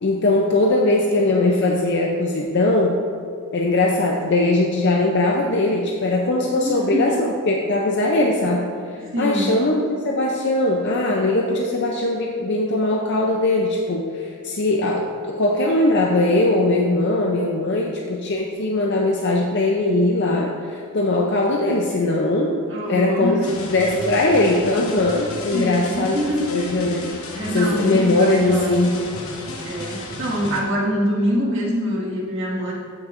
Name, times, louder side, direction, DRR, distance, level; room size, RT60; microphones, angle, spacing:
voice 1, 0.0-3.0 3.5-8.7 8.9-22.6 22.9-23.4 23.7-26.2 26.5-27.1 27.5-29.0, left 2 dB, 50° left, 0 dB, 0.5 m, -20 dB
voice 2, 6.5-7.2 9.1-9.6 22.7-23.5 25.5-26.6 27.4-28.8 29.6-32.7, equal, 55° right, -5 dB, 1.8 m, -24 dB
sound 1, 23.4-30.6, left 2 dB, 70° left, 1.1 m, -33 dB
14.5 x 6.2 x 2.5 m, 2.4 s
head